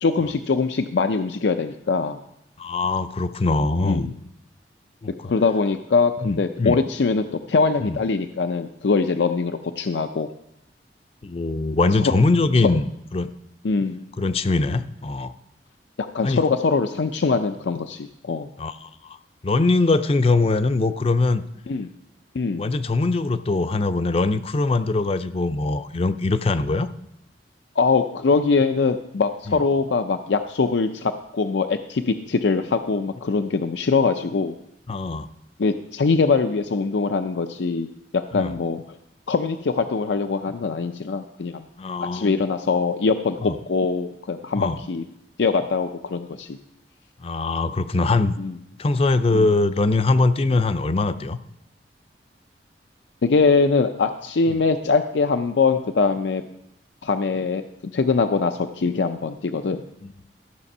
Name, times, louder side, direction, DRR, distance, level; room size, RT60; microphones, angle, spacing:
voice 1, 0.0-2.2 3.8-4.2 5.2-10.3 12.0-12.1 13.6-14.0 16.0-18.5 21.7-21.9 22.3-22.7 27.8-34.5 35.6-37.9 38.1-39.0 39.3-41.6 42.0-45.0 45.4-46.6 48.4-48.5 49.3-49.5 53.2-56.4 57.0-59.8, left 4 dB, 85° left, 8 dB, 0.5 m, -22 dB
voice 2, 2.6-4.1 5.0-5.3 6.2-6.8 7.8-8.0 11.2-12.8 13.1-13.3 14.2-15.3 16.2-16.4 18.6-19.2 19.4-21.4 22.5-26.9 29.5-29.6 34.9-35.3 38.3-38.5 41.8-42.4 43.4-43.6 44.5-44.8 47.2-48.3 48.8-51.4 54.5-54.6 60.0-60.1, left 3 dB, 35° left, 13 dB, 0.4 m, -22 dB
12.5 x 6.7 x 5.4 m, 0.81 s
head